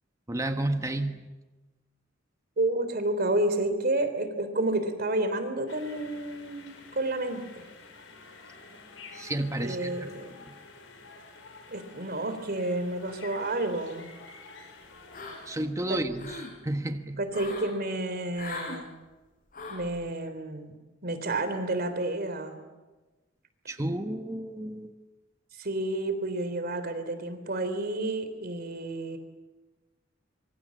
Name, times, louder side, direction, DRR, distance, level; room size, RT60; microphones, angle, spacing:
voice 1, 0.3-1.3 9.1-10.1 15.5-16.4 16.6-17.3 23.7-24.9, right 1 dB, 15° right, 6 dB, 1.3 m, -31 dB
voice 2, 2.6-7.7 9.6-10.3 11.7-14.1 15.9-16.0 17.2-18.9 19.7-22.6 25.6-29.2, right 2 dB, 50° right, 10 dB, 3.5 m, -30 dB
sound 1, 5.7-15.7, left 4 dB, 85° left, 5.7 m, -49 dB
sound 2, 15.1-15.6 16.0-16.5 17.3-17.7 18.3-18.8 19.5-19.9, left 3 dB, 45° left, 6.0 m, -39 dB
26.0 x 24.0 x 7.6 m, 1.2 s
head